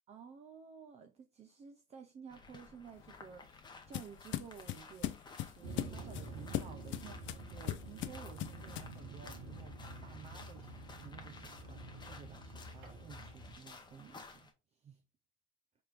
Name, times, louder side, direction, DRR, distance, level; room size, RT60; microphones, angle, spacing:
voice 1, 0.1-15.0, right 7 dB, 25° right, 0.3 m, -54 dB
sound 1, 2.3-14.5, left 3 dB, 15° left, 0.7 m, -55 dB
sound 2, 3.0-9.0, left 13 dB, 45° left, 0.4 m, -41 dB
sound 3, 5.6-13.5, right 2 dB, 70° right, 1.4 m, -48 dB
4.3 x 3.5 x 2.4 m
supercardioid pair, 115°, 29 cm